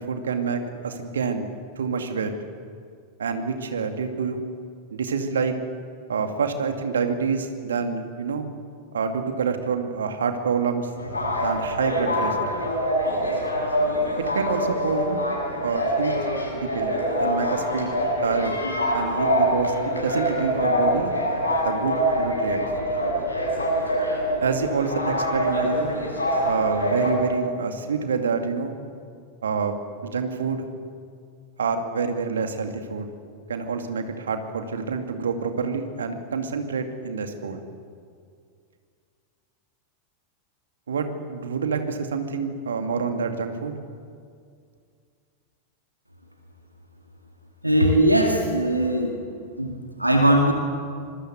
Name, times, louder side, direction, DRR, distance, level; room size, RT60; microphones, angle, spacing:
voice 1, 0.0-1.5 1.8-2.3 3.2-4.4 4.9-5.6 6.1-8.5 8.9-10.9 11.4-12.4 14.3-15.2 15.6-16.1 16.5-16.9 17.2-17.9 18.2-18.6 18.9-21.1 21.6-22.7 24.4-26.0 26.4-28.7 29.4-30.6 31.6-33.1 33.5-37.6 40.9-43.8, right 5 dB, 65° right, 6 dB, 2.5 m, -27 dB
sound 1, 11.0-27.1, equal, 75° left, 6.8 m, -25 dB
voice 2, 47.6-49.2 49.6-50.5, right 1 dB, 85° right, 3 dB, 2.4 m, -20 dB
25.5 x 21.5 x 8.1 m, 2.2 s
figure-of-eight pair, 90°, 0 cm